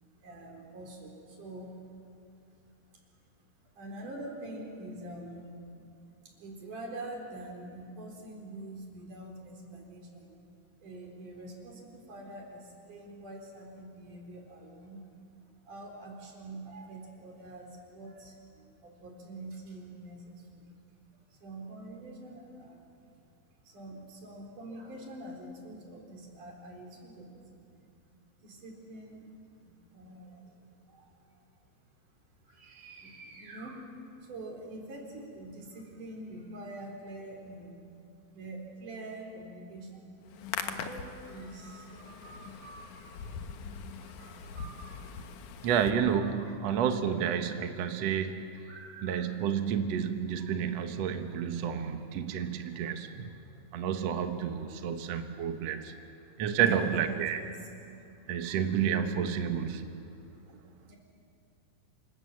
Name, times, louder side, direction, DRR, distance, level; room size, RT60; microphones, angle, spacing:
voice 1, 0.1-2.0 2.6-3.0 3.6-5.5 6.3-10.4 10.8-15.0 15.6-20.8 21.3-22.9 23.6-27.6 28.4-29.3 29.6-30.6 30.9-31.5 32.4-37.8 38.3-40.1 40.6-43.3 43.9-45.2 45.8-45.9 46.1-46.8 47.9-48.0 48.6-49.4 50.3-50.6 51.9-52.1 52.7-52.8 54.2-54.5 55.8-55.9 56.5-57.7 58.3-58.4 59.5-59.6 60.4-61.0, right 2 dB, 50° right, 1 dB, 5.4 m, -46 dB
Hands, 40.2-45.9, left 6 dB, 65° left, 2.2 m, -41 dB
voice 2, 45.6-48.4 49.0-53.3 53.7-55.9 56.4-57.4 58.3-59.9, right 8 dB, 75° right, 7 dB, 1.5 m, -30 dB
27.5 x 26.0 x 7.5 m, 2.6 s
omnidirectional pair, 4.7 m